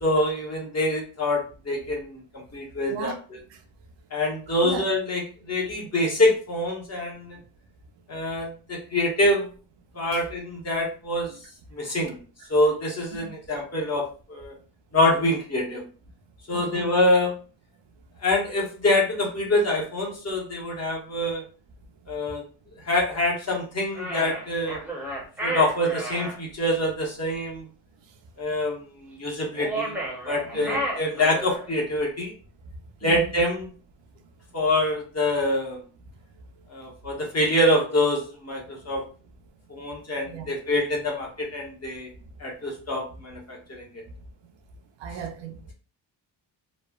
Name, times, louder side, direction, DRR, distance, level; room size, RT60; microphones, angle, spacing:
voice 1, 0.0-2.2 2.5-3.4 4.1-7.4 8.1-9.5 9.9-11.3 11.7-12.2 12.5-14.5 14.9-15.8 16.5-17.4 18.2-21.4 22.1-22.4 22.8-24.8 25.4-27.7 28.4-29.9 30.3-32.3 33.0-33.7 34.5-35.8 36.7-39.0 39.7-42.1 42.4-43.9, left 1 dB, 35° left, 0.9 m, -25 dB
voice 2, 16.5-16.9 30.5-30.7 33.0-33.3 40.3-40.5 45.0-45.7, right 6 dB, 70° right, 0.6 m, -35 dB
sound 1, 23.9-26.4 29.5-31.7, right 1 dB, 5° right, 0.7 m, -32 dB
3.1 x 2.0 x 2.3 m
wide cardioid pair, 125°, 44 cm